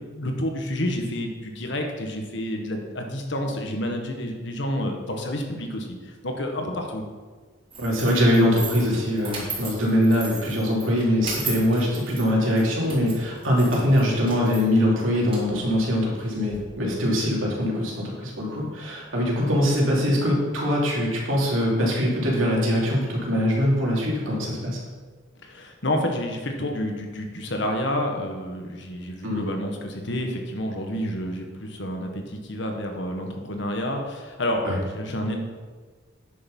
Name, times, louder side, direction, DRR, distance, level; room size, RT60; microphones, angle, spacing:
voice 1, 0.0-7.0 25.4-35.4, left 1 dB, 65° left, 3 dB, 1.5 m, -29 dB
sound 1, 7.7-16.6, right 4 dB, 30° right, 3.2 m, -37 dB
voice 2, 7.8-24.8 29.2-29.5 34.6-34.8, equal, 85° right, -3 dB, 3.0 m, -22 dB
9.7 x 7.0 x 5.4 m, 1.5 s
head